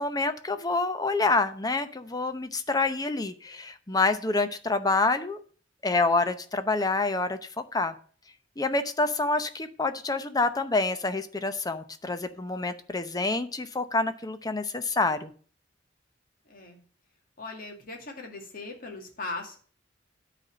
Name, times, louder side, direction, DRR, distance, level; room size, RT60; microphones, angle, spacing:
voice 1, 0.0-5.4 5.8-7.4 7.7-7.9 8.6-15.3, left 3 dB, 20° left, 10 dB, 0.7 m, -27 dB
voice 2, 16.5-16.8 17.4-19.6, left 3 dB, 50° left, 2 dB, 2.2 m, -39 dB
9.5 x 4.2 x 7.5 m, 0.43 s
head